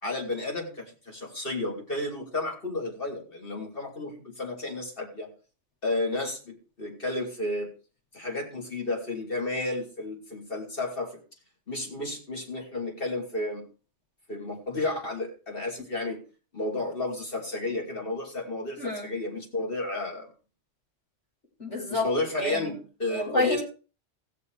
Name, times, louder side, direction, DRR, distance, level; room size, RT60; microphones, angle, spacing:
voice 1, 0.0-5.3 5.8-7.7 8.1-11.2 11.7-13.7 14.3-16.2 16.5-20.3 21.9-23.6, left 2 dB, 50° left, 0 dB, 3.1 m, -32 dB
voice 2, 18.8-19.1 21.6-22.1 22.4-22.8 23.1-23.6, left 2 dB, 75° left, -2 dB, 5.2 m, -29 dB
16.5 x 6.6 x 4.8 m, 0.36 s
omnidirectional pair, 1.2 m